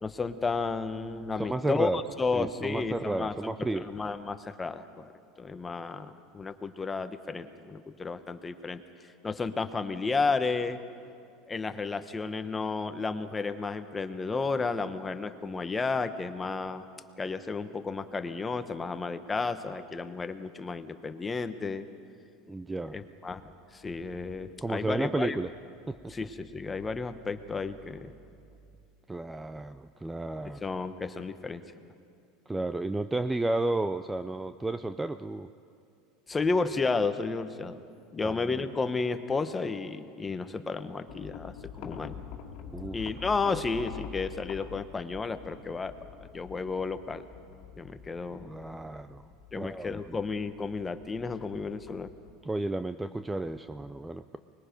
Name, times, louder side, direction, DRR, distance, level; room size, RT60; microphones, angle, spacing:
voice 1, 0.0-3.5 3.8-5.1 5.4-8.8 9.2-10.8 11.5-16.9 17.2-21.8 22.9-25.4 26.1-28.1 30.4-31.6 36.3-37.8 38.1-42.2 42.9-47.2 47.8-48.6 49.5-52.1, left 4 dB, 15° left, 9 dB, 1.0 m, -32 dB
voice 2, 1.4-2.0 2.3-3.9 22.5-23.0 24.6-25.5 25.9-26.1 29.1-30.6 32.5-35.5 38.2-38.6 42.7-43.0 48.3-49.3 49.6-50.2 52.4-54.4, right 2 dB, 10° right, 11 dB, 0.4 m, -32 dB
sound 1, 41.1-52.4, left 7 dB, 55° left, 2.2 m, -46 dB
24.5 x 21.0 x 5.2 m, 2.5 s
supercardioid pair, 120°, 0 cm